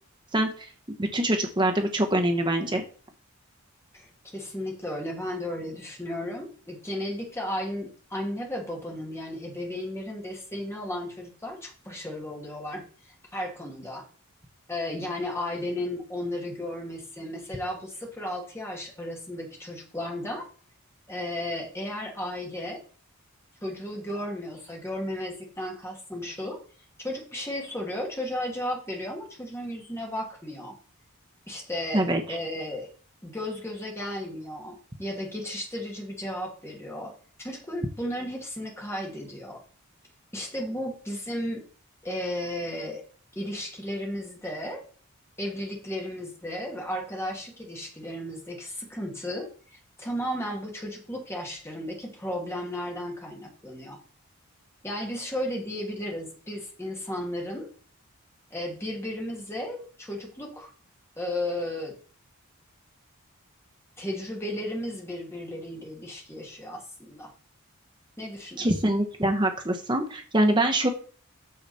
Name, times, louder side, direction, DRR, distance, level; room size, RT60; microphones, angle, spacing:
voice 1, 0.3-0.7 1.0-2.8 31.9-32.4 68.6-70.9, right 1 dB, 20° right, 4 dB, 0.9 m, -24 dB
voice 2, 3.9-14.0 14.7-20.5 21.1-22.8 23.6-26.6 27.0-30.7 31.5-32.9 33.2-37.1 37.4-39.6 40.3-41.6 42.0-43.0 43.3-44.8 45.4-54.0 54.8-57.7 58.5-60.7 61.2-62.0 64.0-67.3 68.2-68.7, left 1 dB, 10° left, -1 dB, 2.3 m, -34 dB
8.5 x 6.8 x 4.2 m, 0.42 s
head